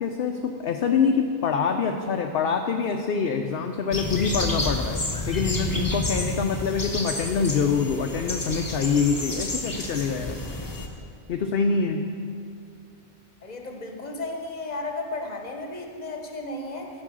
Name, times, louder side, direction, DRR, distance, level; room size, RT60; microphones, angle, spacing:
voice 1, 0.0-5.0 5.3-10.4 11.3-12.1, left 5 dB, 60° left, 4 dB, 0.7 m, -25 dB
sound 1, 3.9-10.9, left 2 dB, 20° left, 0.8 m, -30 dB
voice 2, 13.4-16.9, left 2 dB, 40° left, 3 dB, 1.1 m, -34 dB
13.5 x 5.3 x 6.3 m, 2.5 s
omnidirectional pair, 1.2 m